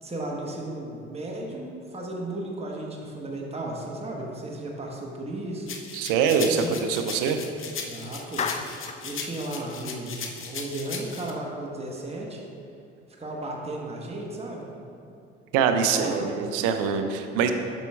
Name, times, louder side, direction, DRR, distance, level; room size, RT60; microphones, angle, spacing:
voice 1, 0.0-5.7 6.4-6.8 7.9-8.5 9.0-12.4 13.2-14.7 15.7-16.4, right 1 dB, 20° right, -1 dB, 1.1 m, -34 dB
sound 1, 5.7-11.3, left 5 dB, 35° left, 0.8 m, -37 dB
voice 2, 5.9-6.6 6.9-7.4 15.5-17.5, right 7 dB, 65° right, 7 dB, 0.6 m, -24 dB
Clapping, 8.4-9.1, left 5 dB, 20° left, 0.3 m, -31 dB
8.0 x 6.2 x 2.3 m, 2.6 s
hypercardioid pair, 55°, 34 cm